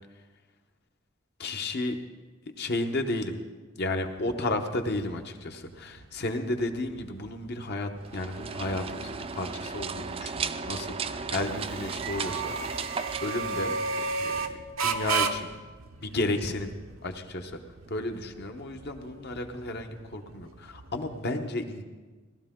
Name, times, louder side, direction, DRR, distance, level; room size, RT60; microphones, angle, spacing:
voice 1, 1.4-2.0 2.6-3.4 3.7-12.5 13.2-14.5 14.8-15.5 16.0-16.7 17.0-17.6 17.9-21.8, left 2 dB, 55° left, 5 dB, 1.0 m, -33 dB
sound 1, 4.0-21.2, right 4 dB, 80° right, 0.8 m, -36 dB
sound 2, 8.0-14.2, right 5 dB, 30° right, 0.4 m, -35 dB
18.0 x 12.5 x 3.8 m, 1.3 s
head